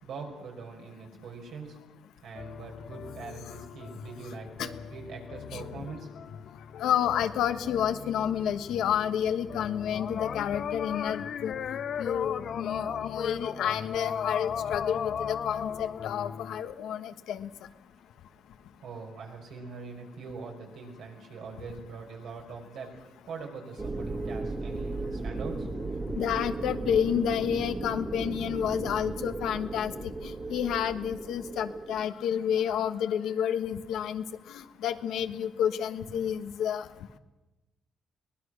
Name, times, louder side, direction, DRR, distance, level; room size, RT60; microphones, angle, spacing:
voice 1, 0.0-1.8 2.2-6.2 18.8-25.7, right 5 dB, 75° right, 1 dB, 5.5 m, -43 dB
sound 1, 2.3-16.6, left 8 dB, 60° left, 0.8 m, -37 dB
voice 2, 6.8-17.5 26.2-29.9 30.2-34.2 34.5-36.8, left 9 dB, 80° left, 9 dB, 1.3 m, -30 dB
sound 2, 23.8-32.0, right 3 dB, 35° right, 2.4 m, -36 dB
23.0 x 19.0 x 6.5 m, 1.1 s
cardioid pair, 90°, 0 cm